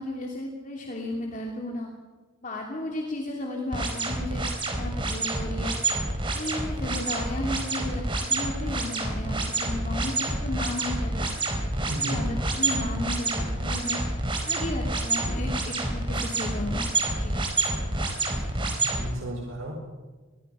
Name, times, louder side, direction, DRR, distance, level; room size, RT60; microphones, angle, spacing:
voice 1, 0.0-1.9 2.4-4.5 4.8-5.9 6.3-11.3 12.0-14.0 14.5-16.8 17.2-17.4, left 1 dB, 40° left, 0 dB, 2.8 m, -34 dB
sound 1, 3.7-19.0, right 2 dB, 25° right, 4.3 m, -28 dB
voice 2, 11.9-12.2 18.3-19.7, right 1 dB, 85° right, -1 dB, 5.2 m, -35 dB
25.0 x 20.5 x 5.6 m, 1.3 s
head